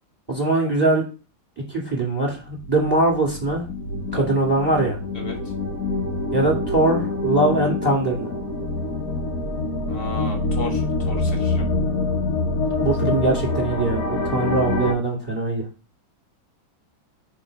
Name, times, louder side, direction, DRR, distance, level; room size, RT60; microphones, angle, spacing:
voice 1, 0.3-1.1 1.7-3.6 4.1-5.0 6.3-8.3 12.8-15.6, right 2 dB, 10° right, -1 dB, 1.9 m, -21 dB
sound 1, 2.5-14.9, left 3 dB, 55° left, 1.3 m, -26 dB
voice 2, 5.1-5.5 9.8-11.7, left 2 dB, 30° left, 2 dB, 1.5 m, -34 dB
5.1 x 3.7 x 5.0 m, 0.33 s
omnidirectional pair, 2.1 m